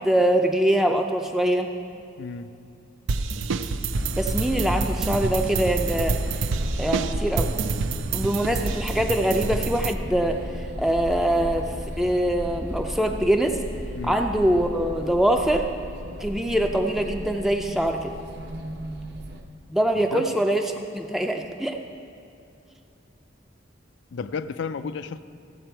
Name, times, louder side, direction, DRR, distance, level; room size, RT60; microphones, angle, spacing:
voice 1, 0.0-1.7 4.2-6.4 6.8-7.5 8.1-13.6 14.0-15.7 16.2-18.1 19.7-21.8, right 1 dB, ahead, 3 dB, 0.4 m, -23 dB
voice 2, 2.2-2.5 8.1-8.8 14.0-14.2 20.0-20.3 24.1-25.2, left 5 dB, 65° left, 13 dB, 0.4 m, -33 dB
sound 1, 3.1-9.9, right 4 dB, 80° right, 0.5 m, -29 dB
sound 2, 3.9-19.4, equal, 55° right, 0.8 m, -33 dB
15.0 x 7.5 x 4.5 m, 2.7 s
head